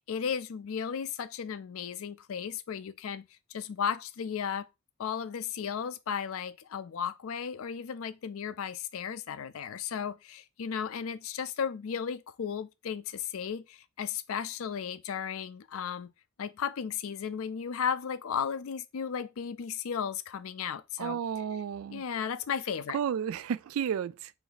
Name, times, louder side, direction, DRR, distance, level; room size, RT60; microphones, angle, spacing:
voice 1, 0.1-4.7 5.0-16.1 16.4-21.2 21.9-23.0, left 7 dB, 80° left, 0.4 m, -35 dB
voice 2, 21.0-22.0 22.9-24.3, right 8 dB, 80° right, 0.3 m, -32 dB
3.9 x 2.6 x 4.0 m
head